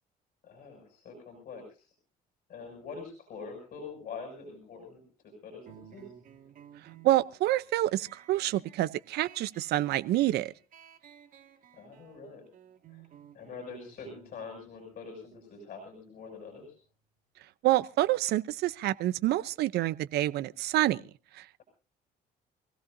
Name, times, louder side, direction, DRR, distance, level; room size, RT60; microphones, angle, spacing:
voice 1, 0.4-1.9 2.5-6.1 11.7-12.4 12.9-13.0 13.3-16.8, left 4 dB, 55° left, 6.8 m, -45 dB
sound 1, 5.7-16.8, right 9 dB, 55° right, 2.0 m, -56 dB
voice 2, 7.0-10.5 17.6-21.0 21.3-21.4, right 15 dB, 75° right, 0.7 m, -27 dB
26.0 x 16.5 x 2.7 m
cardioid pair, 110°, 17 cm